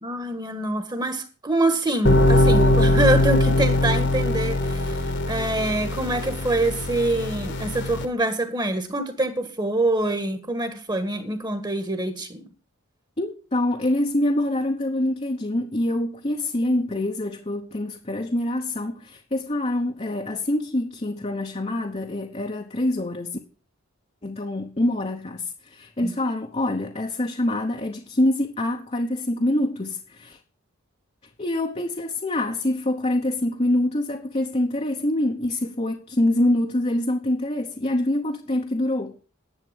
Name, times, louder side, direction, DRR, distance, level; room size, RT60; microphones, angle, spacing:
voice 1, 0.0-12.4 26.0-26.1, right 2 dB, 20° right, 1.6 m, -25 dB
sound 1, 2.0-8.0, left 1 dB, 55° left, 1.6 m, -21 dB
voice 2, 13.2-23.4 24.2-30.4 31.4-39.2, left 1 dB, 30° left, 1.0 m, -25 dB
11.0 x 7.5 x 7.5 m
head